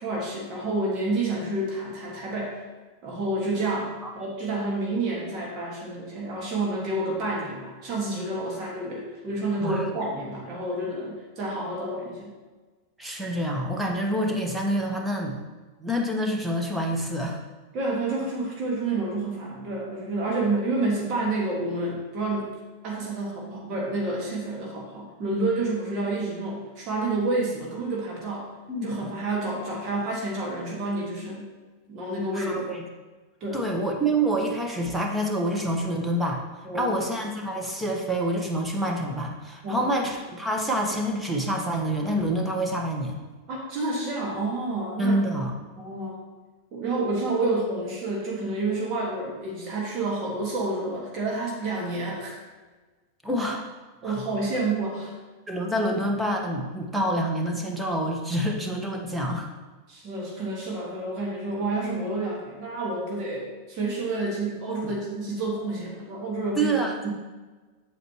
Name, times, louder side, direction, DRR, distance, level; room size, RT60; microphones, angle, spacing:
voice 1, 0.0-2.6 3.0-12.3 17.7-22.6 22.8-28.5 28.8-31.5 31.9-32.7 33.4-33.7 36.6-37.0 39.6-39.9 43.5-45.2 45.8-46.2 46.7-52.4 54.0-55.2 59.9-67.1, right 2 dB, 35° right, -3 dB, 1.7 m, -29 dB
voice 2, 13.0-15.4 15.8-17.4 28.7-28.9 32.3-32.8 33.5-43.2 45.0-45.5 53.2-53.6 54.0-54.2 55.5-59.5 64.8-64.9 66.6-66.9, right 1 dB, 5° right, 1 dB, 1.2 m, -27 dB
8.2 x 7.5 x 3.0 m, 1.3 s
figure-of-eight pair, 90°, 0 cm